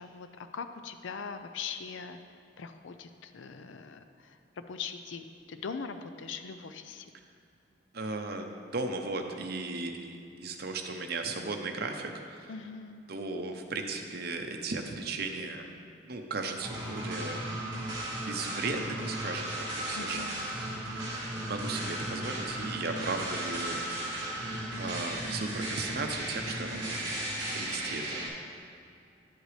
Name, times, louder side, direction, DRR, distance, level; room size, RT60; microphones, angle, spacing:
voice 1, 0.0-2.2 2.6-7.1 12.5-13.0 19.9-20.5, left 5 dB, 75° left, 9 dB, 0.4 m, -41 dB
voice 2, 7.9-12.5 13.1-15.7 16.0-17.4 18.3-20.6 21.4-23.8 24.7-27.2 27.5-28.3, right 3 dB, 55° right, 4 dB, 0.7 m, -36 dB
sound 1, 16.6-28.3, right 1 dB, 20° right, 2.2 m, -35 dB
10.5 x 8.0 x 3.3 m, 2.5 s
head